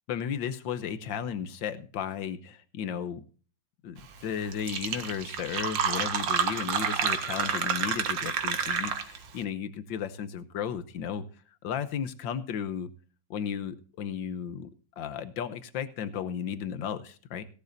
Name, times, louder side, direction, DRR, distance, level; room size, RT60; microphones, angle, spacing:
voice 1, 0.1-3.2 3.8-11.2 11.6-12.9 13.3-14.7 15.0-17.4, left 8 dB, 75° left, 1.7 m, -34 dB
Fill (with liquid), 4.2-4.3 4.5-9.3, right 7 dB, 75° right, 1.9 m, -29 dB
17.0 x 12.0 x 2.6 m
omnidirectional pair, 2.1 m